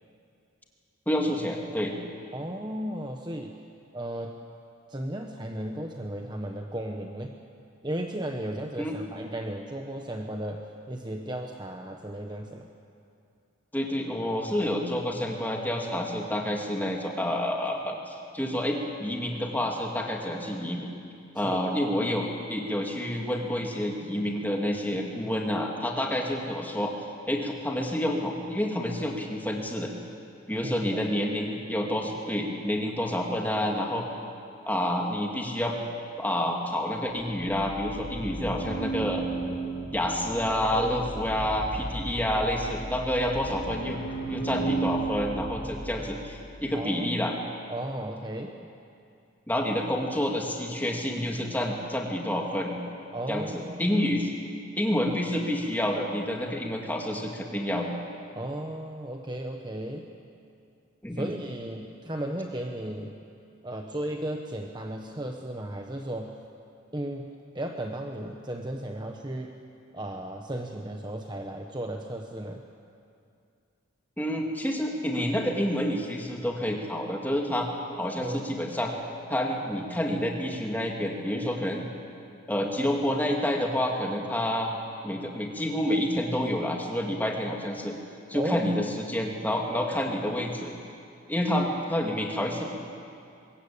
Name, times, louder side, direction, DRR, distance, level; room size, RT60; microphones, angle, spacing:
voice 1, 1.1-1.9 8.8-8.9 13.7-20.9 21.3-26.9 27.3-29.9 30.5-34.0 34.6-35.8 36.2-39.2 39.9-44.0 44.3-47.3 49.5-52.8 53.3-54.3 54.8-57.9 61.0-61.3 74.2-77.7 78.0-78.9 79.3-81.8 82.5-84.7 85.0-87.9 88.3-90.7 91.3-92.6, left 1 dB, 10° left, 0 dB, 2.4 m, -28 dB
voice 2, 2.3-3.6 3.9-4.4 4.9-7.3 7.8-12.7 21.4-21.6 30.6-31.0 40.7-40.9 46.7-47.1 47.7-48.6 53.1-54.1 58.3-60.1 61.1-63.2 63.6-66.4 66.9-69.6 69.9-72.6 78.2-78.4 88.3-88.8, right 1 dB, 20° right, 3 dB, 1.1 m, -35 dB
sound 1, 37.4-46.5, right 3 dB, 70° left, 4.8 m, -34 dB
23.5 x 21.5 x 8.7 m, 2.5 s
head